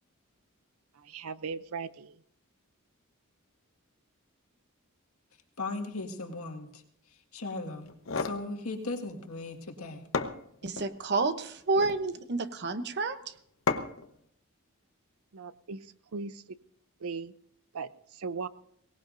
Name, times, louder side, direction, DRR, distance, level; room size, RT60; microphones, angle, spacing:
voice 1, 1.0-2.2 15.3-16.6 17.0-17.3 17.7-18.5, right 4 dB, 80° right, 15 dB, 0.6 m, -38 dB
voice 2, 5.6-6.8 7.1-10.1, left 2 dB, 90° left, 2 dB, 1.9 m, -38 dB
picking up glass bottle, 7.9-8.4 9.7-9.8 10.1-10.9 11.6-12.1 13.7-14.1, left 4 dB, 65° left, 0.9 m, -32 dB
voice 3, 10.6-13.3, right 3 dB, 50° right, 11 dB, 0.8 m, -30 dB
23.0 x 18.0 x 2.6 m, 0.70 s
head